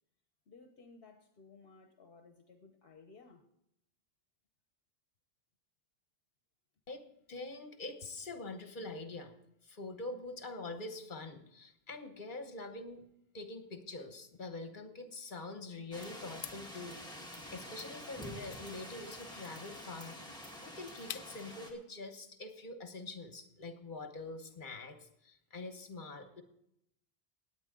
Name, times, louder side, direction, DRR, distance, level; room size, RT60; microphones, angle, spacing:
voice 1, 0.5-3.4, left 4 dB, 65° left, 4 dB, 1.1 m, -58 dB
voice 2, 7.3-9.3 9.6-13.0 13.3-20.2 20.6-26.4, left 2 dB, 50° left, 8 dB, 1.4 m, -45 dB
sound 1, 15.9-21.7, equal, 5° left, 1.9 m, -48 dB
sound 2, 16.3-21.6, left 10 dB, 85° left, 0.9 m, -51 dB
17.5 x 9.3 x 3.8 m, 0.78 s
omnidirectional pair, 1.1 m